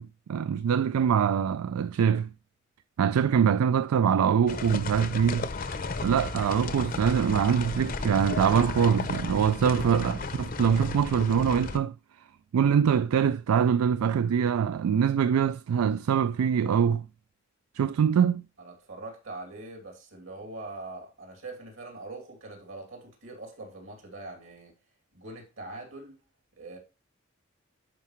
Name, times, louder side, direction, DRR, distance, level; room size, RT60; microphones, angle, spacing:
voice 1, 0.0-2.3 3.0-5.5 6.0-12.0 12.5-17.1 17.7-18.4, right 7 dB, 90° right, 0.3 m, -24 dB
sound 1, 4.5-11.8, left 3 dB, 40° left, 0.6 m, -34 dB
voice 2, 18.6-24.7 25.1-26.2 26.6-26.8, right 2 dB, 65° right, 2.7 m, -42 dB
11.0 x 4.8 x 3.1 m
head